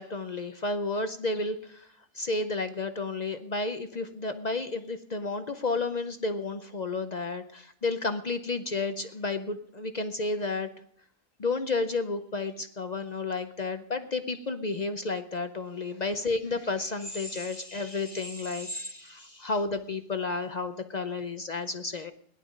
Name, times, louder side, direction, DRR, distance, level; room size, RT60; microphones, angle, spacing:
voice 1, 0.0-1.9 2.1-10.7 11.4-22.1, left 3 dB, 55° left, 9 dB, 0.4 m, -32 dB
17.5 x 11.0 x 5.2 m, 0.66 s
omnidirectional pair, 1.6 m